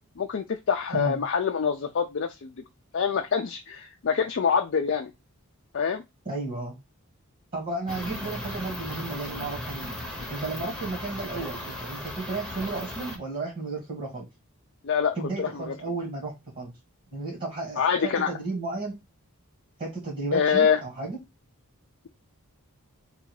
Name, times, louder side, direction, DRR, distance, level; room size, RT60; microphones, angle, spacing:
voice 1, 0.2-2.5 2.9-5.1 5.7-6.0 14.8-15.7 17.8-18.3 20.3-20.8, left 6 dB, 55° left, 4 dB, 0.4 m, -25 dB
voice 2, 6.2-6.7 7.5-10.0 10.3-14.2 15.2-16.7 17.1-18.9 19.8-21.2, right 3 dB, 40° right, -2 dB, 1.7 m, -33 dB
sound 1, 7.9-13.2, left 1 dB, ahead, 0.9 m, -36 dB
3.5 x 2.5 x 4.6 m, 0.21 s
head